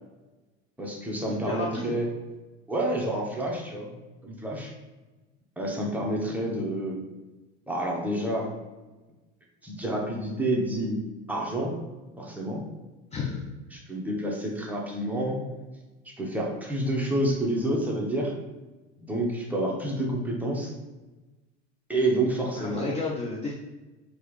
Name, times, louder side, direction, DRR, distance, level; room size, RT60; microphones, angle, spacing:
voice 1, 0.8-2.1 2.7-3.9 4.2-4.7 5.6-7.0 7.7-8.5 9.6-11.0 11.3-11.8 12.2-12.6 13.7-15.4 16.0-18.3 19.1-20.7 21.9-22.9, right 1 dB, 5° right, -2 dB, 1.0 m, -28 dB
voice 2, 1.4-1.9 13.1-13.4 22.6-23.5, left 3 dB, 20° left, -2 dB, 0.5 m, -32 dB
4.7 x 3.0 x 3.1 m, 1.2 s
hypercardioid pair, 80°, 36 cm